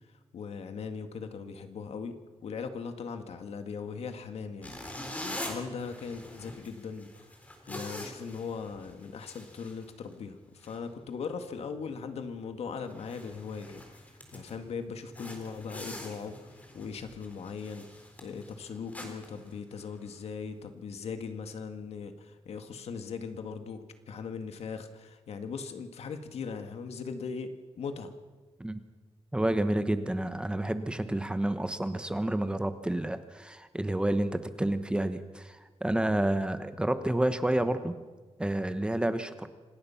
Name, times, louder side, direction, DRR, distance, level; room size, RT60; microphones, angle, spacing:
voice 1, 0.3-2.2 2.4-7.3 7.7-13.8 14.3-17.9 18.2-28.1, left 5 dB, 75° left, 7 dB, 1.9 m, -39 dB
sound 1, 4.6-10.3 10.6-10.8 11.3-11.5 11.9-12.0 12.5-12.6 12.8-14.6 15.1-20.2, left 1 dB, 15° left, 3.7 m, -44 dB
voice 2, 29.3-38.0 38.4-39.5, right 1 dB, 10° right, 10 dB, 1.0 m, -29 dB
26.5 x 18.5 x 5.8 m, 1.3 s
wide cardioid pair, 150°, 11 cm